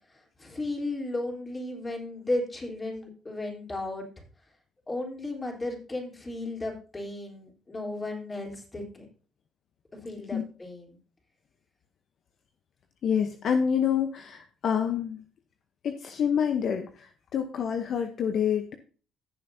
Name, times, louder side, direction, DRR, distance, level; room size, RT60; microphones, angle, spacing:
voice 1, 0.1-4.1 4.9-9.1 9.9-11.0, left 2 dB, 25° left, 0 dB, 3.6 m, -34 dB
voice 2, 13.0-15.2 15.8-18.7, left 7 dB, 65° left, 6 dB, 0.9 m, -27 dB
15.5 x 6.8 x 2.8 m, 0.38 s
supercardioid pair, 55°, 0 cm